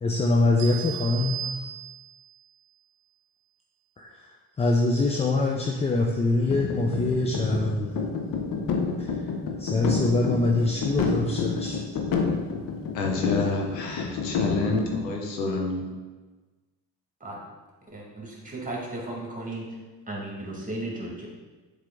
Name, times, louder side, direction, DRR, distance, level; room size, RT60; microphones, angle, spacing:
voice 1, 0.0-1.5 4.0-8.0 9.0-9.1 9.6-11.8, left 2 dB, 15° left, 0 dB, 0.4 m, -24 dB
sound 1, 0.6-2.3, right 10 dB, 55° right, 1.0 m, -36 dB
sound 2, 6.5-15.0, left 4 dB, 40° left, 0.9 m, -29 dB
voice 2, 12.9-15.8, left 3 dB, 80° left, 1 dB, 1.0 m, -28 dB
voice 3, 17.9-19.6 20.1-21.3, right 2 dB, 15° right, -2 dB, 1.9 m, -35 dB
7.3 x 3.5 x 3.7 m, 1.3 s
figure-of-eight pair, 50°, 49 cm